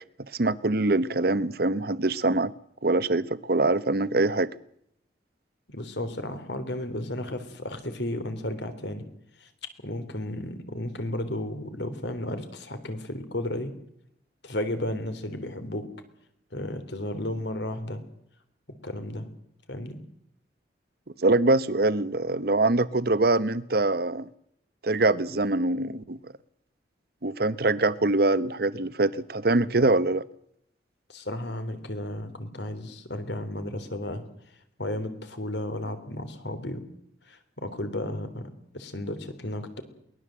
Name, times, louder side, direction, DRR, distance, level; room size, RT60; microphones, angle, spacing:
voice 1, 0.4-2.5 2.8-4.5 21.2-24.3 24.8-26.2 27.2-30.2, right 2 dB, 55° right, 0.9 m, -24 dB
voice 2, 5.7-9.0 9.4-9.5 9.8-13.7 14.4-15.9 16.5-18.0 18.8-19.3 19.7-20.0 31.1-34.2 34.8-36.8 37.3-39.8, left 1 dB, 70° left, 3.4 m, -33 dB
22.5 x 19.0 x 7.7 m
head